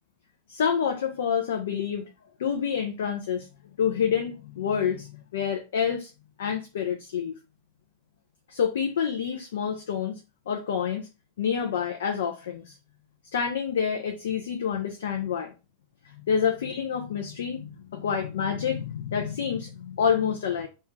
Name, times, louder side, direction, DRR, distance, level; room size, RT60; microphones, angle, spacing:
voice 1, 0.5-2.0 2.4-3.5 3.8-6.1 6.4-7.4 8.5-10.2 10.5-11.1 11.4-12.8 13.3-15.5 16.0-20.7, left 7 dB, 60° left, 0.4 m, -28 dB
2.3 x 2.1 x 3.1 m
figure-of-eight pair, 90°, 0 cm